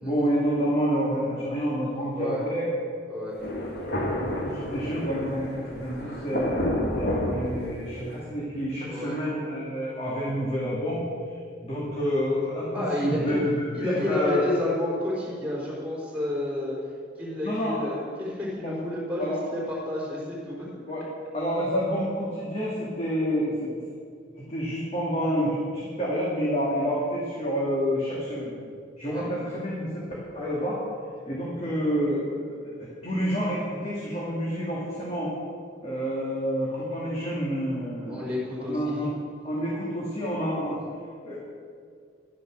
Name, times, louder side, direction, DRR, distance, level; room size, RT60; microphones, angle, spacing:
voice 1, 0.0-2.7 4.1-11.0 11.3-11.4 11.6-14.4 17.4-17.9 18.6-18.7 19.2-19.4 20.9-21.0 21.3-23.8 24.5-28.5 29.0-30.0 30.3-30.8 31.3-35.3 35.8-38.3 38.6-39.1 39.4-40.8 41.2-41.4, equal, 35° left, -7 dB, 2.4 m, -28 dB
voice 2, 2.1-2.4 3.1-3.3 8.9-9.2 12.7-13.4 13.7-16.8 17.2-20.7 29.0-29.3 38.1-39.1 40.8-40.9, left 1 dB, 10° right, -4 dB, 4.1 m, -30 dB
Thunder, 3.4-8.2, left 1 dB, 55° left, 2.1 m, -30 dB
12.5 x 9.8 x 6.3 m, 2.2 s
head